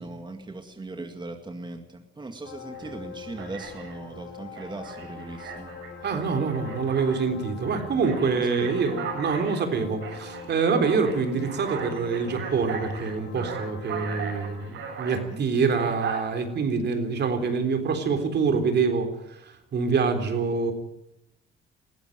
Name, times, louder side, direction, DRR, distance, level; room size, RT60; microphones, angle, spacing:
voice 1, 0.0-5.7 8.3-8.8 9.4-9.5 15.3-15.4, right 2 dB, 20° right, 5 dB, 2.0 m, -39 dB
sound 1, 2.4-14.7, left 5 dB, 80° left, 6.3 m, -43 dB
Alarm, 2.7-2.9 3.4-4.0 4.6-7.2 7.6-15.2 15.7-16.2, right 6 dB, 80° right, 7.5 m, -38 dB
voice 2, 6.0-20.7, right 5 dB, 60° right, 7 dB, 3.7 m, -26 dB
19.5 x 15.0 x 9.1 m, 0.86 s
cardioid pair, 90°, 20 cm